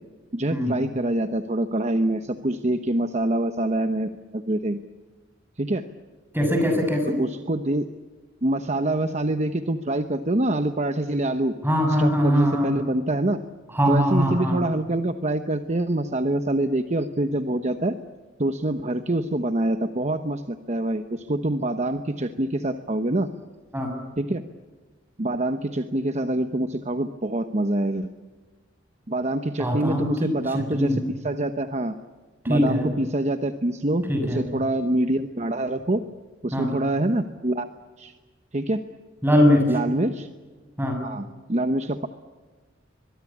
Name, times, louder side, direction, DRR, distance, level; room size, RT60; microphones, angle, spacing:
voice 1, 0.3-4.8 5.6-5.9 7.2-7.9 8.4-11.5 12.0-13.4 13.9-18.0 18.4-23.3 24.2-24.5 25.2-28.1 29.1-31.0 31.2-31.9 32.5-36.0 36.4-37.7 38.0-38.1 38.5-38.8 39.7-40.3 41.0-42.1, right 1 dB, 35° right, 8 dB, 1.0 m, -25 dB
voice 2, 6.3-7.2 11.6-12.7 13.7-14.6 23.7-23.9 29.6-31.0 32.4-32.9 34.1-34.4 36.5-36.7 39.2-39.7 40.8-41.0, equal, 10° right, 3 dB, 6.8 m, -22 dB
23.5 x 22.0 x 8.5 m, 1.4 s
head